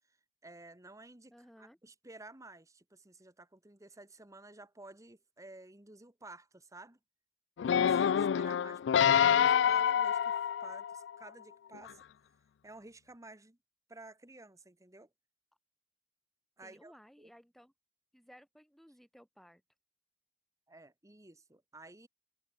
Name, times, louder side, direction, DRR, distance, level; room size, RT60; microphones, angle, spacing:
voice 1, 0.4-1.3 1.6-7.0 7.6-10.3 10.6-12.0 12.6-13.6 13.9-15.1 16.6-16.9 17.2-17.3 20.7-22.1, right 2 dB, 20° right, 1.6 m, -53 dB
voice 2, 1.3-1.8 8.4-8.7 16.6-17.7 18.1-19.6, equal, ahead, 5.3 m, -59 dB
sound 1, 7.6-11.1 11.7-11.8, left 8 dB, 75° left, 0.3 m, -27 dB
head